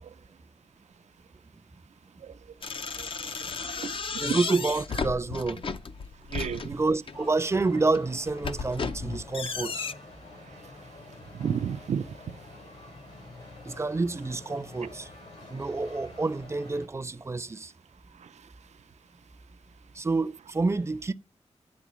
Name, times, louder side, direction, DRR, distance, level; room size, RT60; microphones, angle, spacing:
sound 1, 2.6-7.2 7.8-9.9, left 5 dB, 50° left, 0.5 m, -34 dB
voice 1, 3.3-4.4 6.3-6.6 11.3-12.2, right 7 dB, 80° right, 0.5 m, -32 dB
voice 2, 4.2-5.6 6.7-9.9 13.6-15.1 15.5-17.7 19.9-21.1, right 3 dB, 25° right, 0.5 m, -28 dB
sound 2, 7.1-16.9, left 2 dB, 85° left, 3.0 m, -48 dB
9.6 x 3.6 x 6.1 m
wide cardioid pair, 100°, 12 cm